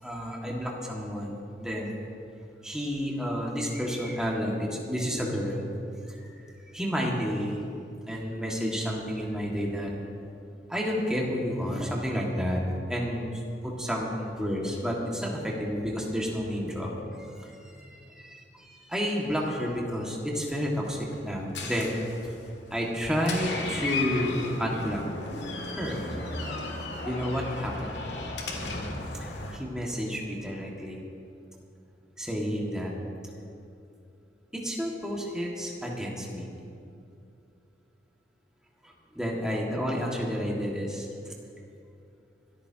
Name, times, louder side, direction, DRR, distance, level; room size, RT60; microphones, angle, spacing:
voice 1, 0.0-2.0 2.6-5.7 6.1-7.6 8.1-9.9 10.7-12.6 12.9-22.0 22.7-25.0 25.6-26.1 27.0-28.0 29.5-31.0 32.2-32.9 34.5-36.5 38.8-41.1, equal, 5° right, -3 dB, 2.0 m, -31 dB
Door, 20.8-29.6, left 3 dB, 75° left, 1.8 m, -36 dB
24.5 x 13.5 x 2.9 m, 2.6 s
head